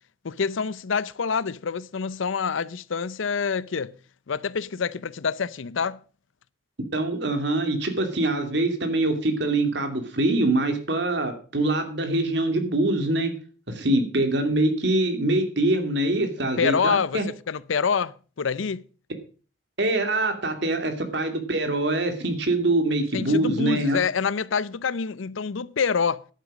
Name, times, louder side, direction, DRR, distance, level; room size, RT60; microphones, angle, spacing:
voice 1, 0.2-3.9 4.3-6.0 16.6-17.2 17.5-18.8 23.1-26.2, left 6 dB, 85° left, 0.6 m, -26 dB
voice 2, 6.9-13.3 13.7-17.2 19.8-24.0, right 2 dB, 60° right, 2.5 m, -24 dB
11.0 x 9.1 x 6.2 m
head